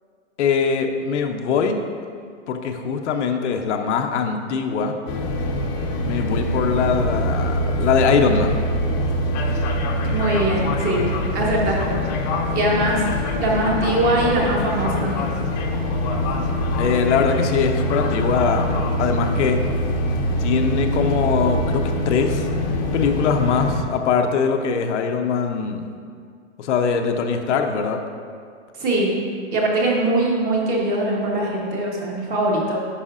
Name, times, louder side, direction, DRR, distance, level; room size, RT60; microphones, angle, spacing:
voice 1, 0.4-1.8 2.5-4.9 6.0-8.6 16.7-19.6 20.4-22.5 22.9-25.9 26.6-28.0, left 6 dB, 70° left, 5 dB, 0.7 m, -22 dB
sound 1, 5.1-23.8, left 1 dB, 35° left, 0.7 m, -24 dB
voice 2, 10.1-12.0 12.5-13.0 13.3-15.3 28.8-29.1 29.5-32.8, right 2 dB, 25° right, -2 dB, 1.1 m, -22 dB
9.8 x 5.6 x 2.5 m, 2.2 s
hypercardioid pair, 150°, 36 cm